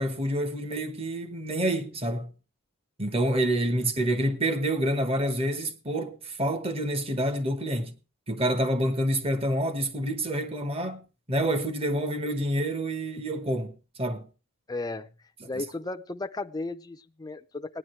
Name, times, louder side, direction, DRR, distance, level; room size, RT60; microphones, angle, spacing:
voice 1, 0.0-2.3 3.0-7.9 8.3-11.0 11.3-14.3 15.4-15.6, right 1 dB, 25° right, 1.1 m, -28 dB
voice 2, 14.7-15.1 15.4-17.8, left 3 dB, 15° left, 0.5 m, -35 dB
18.0 x 10.5 x 3.2 m
head